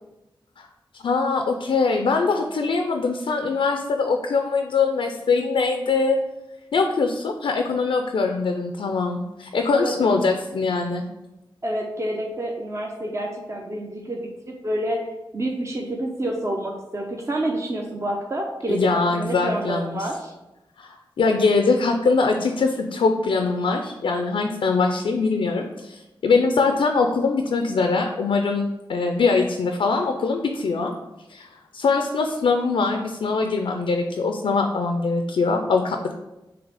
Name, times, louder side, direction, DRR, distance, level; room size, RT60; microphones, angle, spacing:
voice 1, 1.0-6.2 6.7-11.0 18.7-20.1 20.8-28.6 28.9-30.9 31.3-36.1, left 4 dB, 80° left, 4 dB, 0.4 m, -22 dB
voice 2, 11.6-15.1 15.3-20.3, right 1 dB, 35° right, 0 dB, 0.7 m, -28 dB
3.9 x 2.8 x 4.7 m, 0.96 s
cardioid pair, 45°, 9 cm